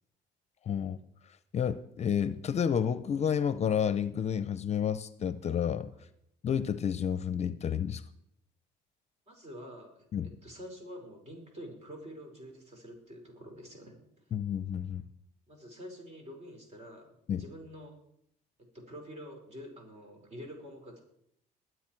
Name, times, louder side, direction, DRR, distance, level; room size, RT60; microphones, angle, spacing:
voice 1, 0.7-1.0 1.5-5.9 6.4-8.0 10.1-10.3 14.3-15.0 17.3-17.4, left 8 dB, 40° left, 14 dB, 0.6 m, -30 dB
voice 2, 9.3-10.0 10.4-14.0 15.5-17.1 17.4-17.9 18.7-21.0, equal, 40° right, 2 dB, 5.2 m, -47 dB
22.5 x 7.9 x 4.6 m, 0.75 s
cardioid pair, 110°, 17 cm